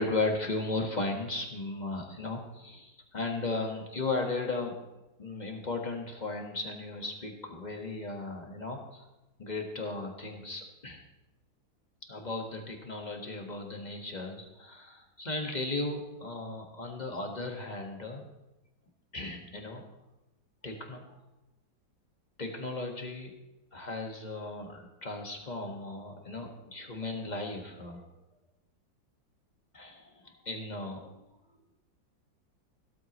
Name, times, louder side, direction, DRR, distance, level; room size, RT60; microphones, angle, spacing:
voice 1, 0.0-4.8 5.2-9.0 9.4-11.0 12.1-18.2 19.1-19.8 20.6-21.1 22.4-23.3 23.7-28.1 29.7-31.1, left 2 dB, 25° left, 2 dB, 1.5 m, -36 dB
16.0 x 13.0 x 3.1 m, 1.0 s
omnidirectional pair, 2.0 m